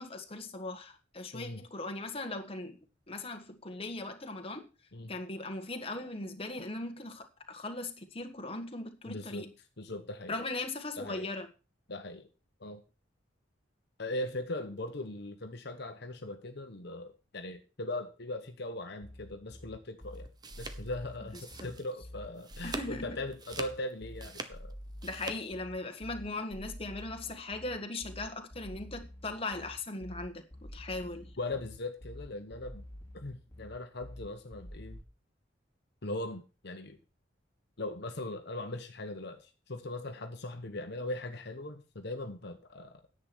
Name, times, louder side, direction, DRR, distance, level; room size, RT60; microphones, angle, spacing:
voice 1, 0.0-2.8 3.1-4.7 5.1-9.5 10.3-11.5 21.6-21.7 22.6-23.2 25.0-31.3, left 2 dB, 30° left, 1.7 m, -39 dB
voice 2, 9.0-9.5 9.8-10.3 11.0-11.3 11.9-12.3 12.6-12.8 14.0-20.3 20.6-24.7 31.4-32.8 33.1-35.0 36.0-37.0 37.8-43.0, left 2 dB, 60° left, 1.2 m, -39 dB
sound 1, 19.0-35.0, left 1 dB, 15° left, 2.9 m, -48 dB
sound 2, 20.1-22.0 22.3-23.0 23.3-25.4, right 3 dB, 20° right, 1.1 m, -43 dB
10.5 x 8.0 x 6.1 m
head